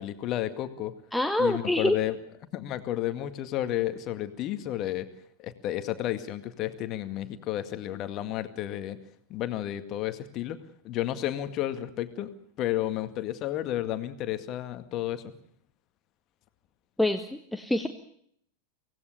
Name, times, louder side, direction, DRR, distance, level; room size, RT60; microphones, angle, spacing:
voice 1, 0.0-0.9 1.4-2.2 2.5-5.1 5.4-9.0 9.3-12.3 12.6-15.3, left 13 dB, 35° left, 10 dB, 2.0 m, -32 dB
voice 2, 1.1-2.0 17.0-17.9, left 1 dB, 5° left, 7 dB, 1.4 m, -26 dB
25.0 x 18.0 x 6.8 m, 0.68 s
figure-of-eight pair, 90°, 0 cm